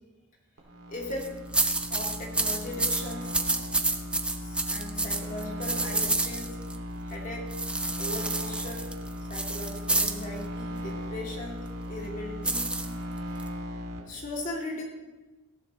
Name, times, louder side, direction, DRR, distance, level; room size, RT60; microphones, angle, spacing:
sound 1, 0.6-14.0, equal, 80° right, 2.4 m, -38 dB
voice 1, 0.9-1.3 1.9-3.4 4.3-6.6 7.1-7.5 8.0-8.9 9.3-12.8 14.1-14.8, left 1 dB, 35° left, -2 dB, 2.7 m, -38 dB
sound 2, 1.0-1.3 1.5-6.8 7.5-10.2 12.4-13.5, right 2 dB, 5° right, 0.5 m, -29 dB
18.5 x 14.0 x 3.1 m, 1.2 s
head